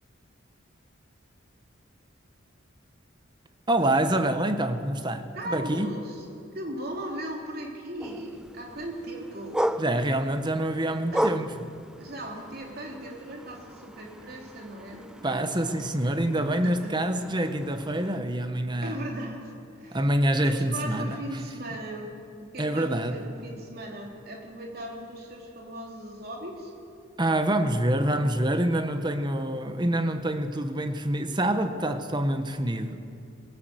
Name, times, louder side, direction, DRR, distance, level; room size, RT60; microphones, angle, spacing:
voice 1, 3.7-6.0 9.8-11.7 15.2-19.0 19.9-21.2 22.6-23.2 27.2-33.0, right 1 dB, 20° right, 1.2 m, -26 dB
voice 2, 5.3-6.2 6.5-9.6 11.1-11.3 12.0-15.5 16.6-17.1 18.8-20.0 20.4-22.1 22.4-26.7, right 1 dB, 50° right, 3.5 m, -38 dB
sound 1, 8.0-18.2, equal, 5° right, 0.4 m, -36 dB
20.5 x 17.0 x 8.1 m
head